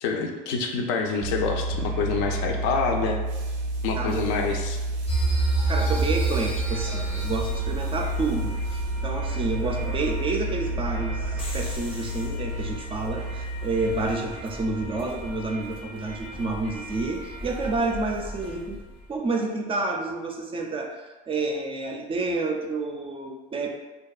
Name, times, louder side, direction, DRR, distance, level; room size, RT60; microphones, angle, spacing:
voice 1, 0.0-3.2 3.8-4.8, left 4 dB, 75° left, 3 dB, 0.4 m, -27 dB
sound 1, 1.2-14.1, right 2 dB, 90° right, 0.5 m, -30 dB
sound 2, 5.1-19.0, right 2 dB, 25° left, 0.5 m, -32 dB
voice 2, 5.7-18.8 19.1-23.7, right 3 dB, 25° right, 2 dB, 0.3 m, -29 dB
2.5 x 2.2 x 2.3 m, 1.2 s
supercardioid pair, 90°, 20 cm